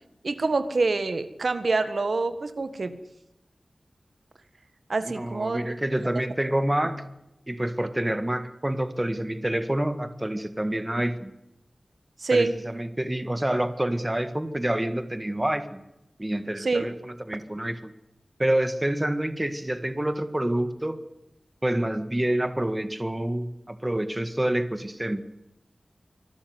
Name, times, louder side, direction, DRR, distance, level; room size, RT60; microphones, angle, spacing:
voice 1, 0.2-2.9 4.9-5.7 12.2-12.5 16.6-16.9, right 3 dB, 70° right, 11 dB, 1.6 m, -26 dB
voice 2, 5.1-7.0 7.5-11.3 12.3-15.8 16.2-17.9 18.4-21.0 21.6-25.2, right 1 dB, 20° right, 11 dB, 1.8 m, -27 dB
25.0 x 13.0 x 9.5 m, 0.90 s
wide cardioid pair, 80°, 0 cm